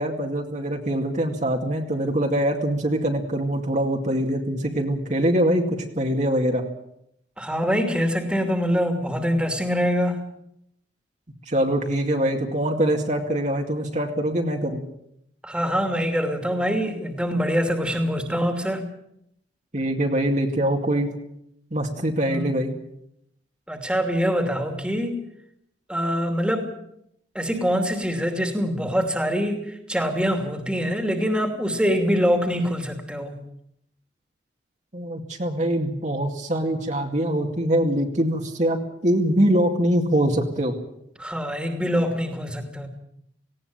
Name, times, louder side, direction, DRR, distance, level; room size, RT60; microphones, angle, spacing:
voice 1, 0.0-5.7 6.0-6.6 11.5-14.8 19.7-21.1 21.7-22.7 34.9-40.7, right 1 dB, 40° right, 2 dB, 2.3 m, -23 dB
voice 2, 7.4-10.2 15.4-18.8 22.3-22.6 23.7-25.2 25.9-26.7 27.3-33.4 41.2-42.9, equal, 5° right, 5 dB, 2.7 m, -24 dB
18.5 x 17.5 x 9.0 m, 0.75 s
head